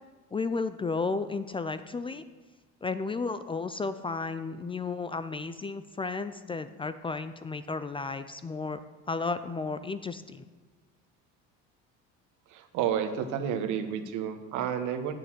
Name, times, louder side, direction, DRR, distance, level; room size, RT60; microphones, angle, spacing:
voice 1, 0.3-2.2 2.8-8.8 9.1-10.4, left 4 dB, 15° left, 12 dB, 0.4 m, -33 dB
voice 2, 12.5-15.1, right 8 dB, 70° right, 8 dB, 1.1 m, -31 dB
8.2 x 6.6 x 7.5 m, 1.3 s
supercardioid pair, 95°, 31 cm